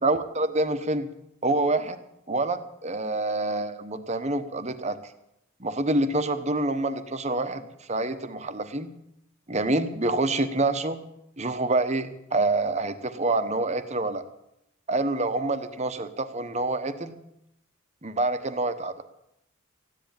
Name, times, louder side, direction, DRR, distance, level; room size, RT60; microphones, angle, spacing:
voice 1, 0.0-1.1 1.4-2.0 2.3-5.1 5.6-8.9 9.5-11.0 11.4-14.2 14.9-17.2 18.0-19.0, right 2 dB, 30° right, 10 dB, 1.1 m, -27 dB
15.0 x 10.5 x 8.8 m, 0.79 s
head